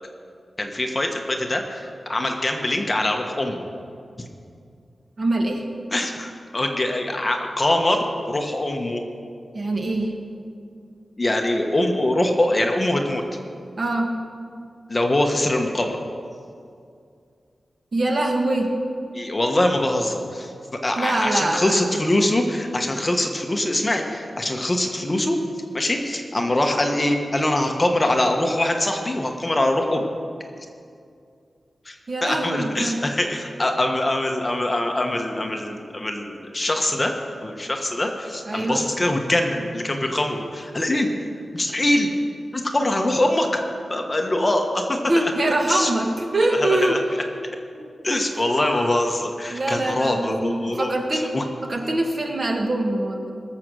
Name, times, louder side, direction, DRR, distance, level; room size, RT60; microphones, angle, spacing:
voice 1, 0.6-3.6 5.9-9.0 11.2-13.2 14.9-16.0 19.1-20.5 20.8-25.4 25.7-30.1 31.8-37.1 37.4-41.1 41.5-42.1 42.5-43.6 43.9-45.3 45.7-45.9 46.6-47.0 48.0-51.4, left 1 dB, 25° left, 3 dB, 1.2 m, -23 dB
voice 2, 5.2-5.6 9.5-10.1 13.8-14.1 17.9-18.7 20.9-21.8 32.1-33.0 38.4-38.8 44.3-44.6 45.1-47.0 47.8-47.9 48.3-48.5 49.5-51.3 51.6-53.3, right 1 dB, 45° right, 2 dB, 1.6 m, -24 dB
20.0 x 7.6 x 6.3 m, 2.4 s
wide cardioid pair, 140°, 0 cm